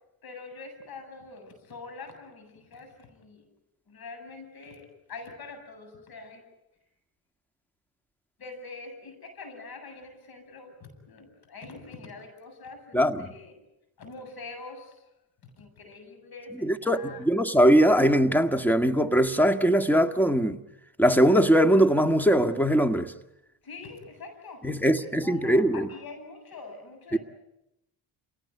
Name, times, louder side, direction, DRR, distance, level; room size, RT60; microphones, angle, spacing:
voice 1, 0.2-3.4 3.9-6.4 8.4-13.5 14.0-15.0 15.4-17.3 23.6-24.6 25.0-27.2, left 3 dB, 55° left, 8.0 m, -44 dB
voice 2, 12.9-13.3 16.6-20.6 21.0-23.1 24.6-25.9 27.1-27.2, equal, 5° left, 1.8 m, -21 dB
29.5 x 18.0 x 9.6 m
cardioid pair, 90°, 43 cm